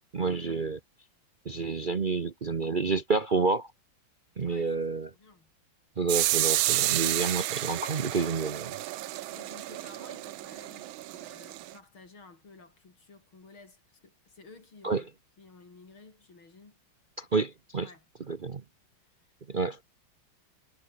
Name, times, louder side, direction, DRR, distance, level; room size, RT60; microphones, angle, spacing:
voice 1, 0.1-0.8 1.4-3.7 4.4-5.1 6.0-8.8 14.8-15.0 17.2-17.9 18.3-18.6 19.5-19.8, right 4 dB, 45° right, 0.6 m, -29 dB
voice 2, 4.4-4.7 5.1-5.5 9.3-15.1 15.4-16.8 17.8-18.1 19.2-19.3, left 3 dB, 90° left, 5.7 m, -54 dB
sound 1, 6.1-11.7, right 15 dB, 80° right, 1.5 m, -30 dB
omnidirectional pair, 2.2 m